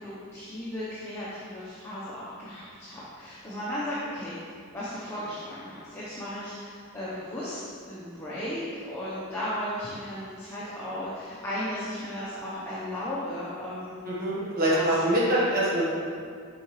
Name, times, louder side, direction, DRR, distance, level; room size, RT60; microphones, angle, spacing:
voice 1, 0.0-14.0 14.7-15.0, left 1 dB, 10° left, -10 dB, 0.8 m, -35 dB
voice 2, 14.0-15.9, right 1 dB, 40° right, -7 dB, 1.3 m, -24 dB
6.9 x 4.8 x 3.2 m, 2.2 s
head